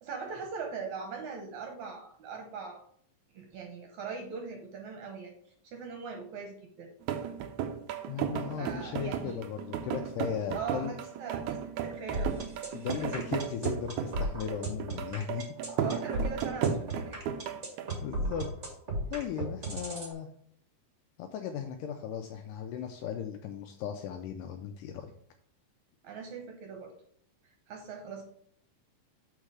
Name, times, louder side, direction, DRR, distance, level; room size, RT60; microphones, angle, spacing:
voice 1, 0.0-2.8 3.3-5.3 5.6-6.9 8.6-9.4 10.5-12.4 15.8-17.2 26.0-26.9 27.4-28.2, right 5 dB, 70° right, 3 dB, 1.9 m, -40 dB
sound 1, 7.0-18.0, right 8 dB, 90° right, 1.7 m, -35 dB
voice 2, 8.1-10.9 12.7-15.5 18.0-18.5 19.1-20.3 21.2-25.1, left 8 dB, 80° left, 5 dB, 1.9 m, -37 dB
sound 2, 12.1-20.1, right 2 dB, 35° right, 1.1 m, -35 dB
7.6 x 4.5 x 4.8 m, 0.64 s
omnidirectional pair, 4.3 m